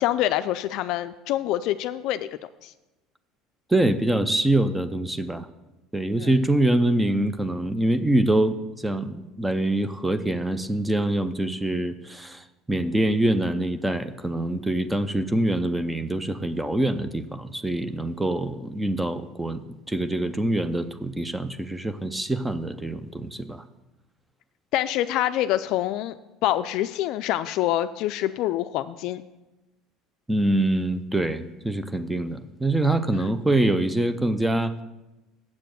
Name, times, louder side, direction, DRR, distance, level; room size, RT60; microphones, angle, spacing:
voice 1, 0.0-2.7 6.2-6.3 24.7-26.2 26.4-29.2, left 13 dB, 65° left, 11 dB, 0.3 m, -26 dB
voice 2, 3.7-5.5 5.9-19.6 19.9-23.6 30.3-34.8, right 1 dB, 10° right, 11 dB, 0.5 m, -25 dB
7.2 x 6.7 x 7.7 m, 1.0 s
supercardioid pair, 120°, 0 cm